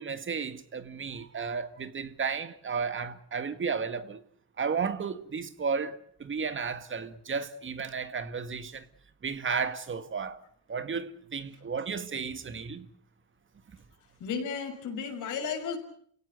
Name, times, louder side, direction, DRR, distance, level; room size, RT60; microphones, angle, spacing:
voice 1, 0.0-4.2 4.6-8.9 9.2-10.4 10.7-12.9, right 5 dB, 40° right, 1.9 m, -33 dB
voice 2, 14.2-15.8, left 6 dB, 80° left, 6.6 m, -33 dB
29.5 x 17.0 x 8.1 m
cardioid pair, 90°, 30 cm